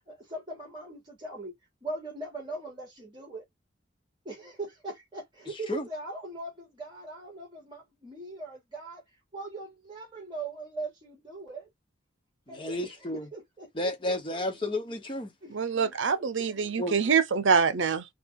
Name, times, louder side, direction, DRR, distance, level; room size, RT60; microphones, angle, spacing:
voice 1, 0.0-1.5 1.8-3.4 4.2-9.0 9.3-11.7 12.5-12.9 13.3-13.7 14.1-14.5 15.4-16.7, right 2 dB, 25° right, 2.9 m, -40 dB
voice 2, 12.5-13.3 13.7-15.3 16.8-16.9, left 1 dB, 25° left, 1.0 m, -32 dB
voice 3, 15.5-18.0, right 6 dB, 75° right, 0.6 m, -25 dB
4.8 x 2.4 x 3.6 m
head